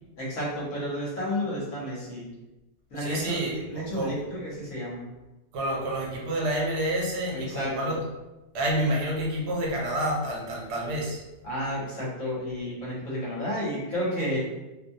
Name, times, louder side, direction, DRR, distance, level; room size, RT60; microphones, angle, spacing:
voice 1, 0.2-2.3 2.9-5.0 7.3-7.9 11.4-14.4, equal, 60° left, -7 dB, 1.2 m, -31 dB
voice 2, 3.0-4.2 5.5-8.0 8.5-11.2, right 1 dB, 80° right, -3 dB, 1.3 m, -28 dB
2.9 x 2.1 x 2.6 m, 1.0 s
omnidirectional pair, 1.8 m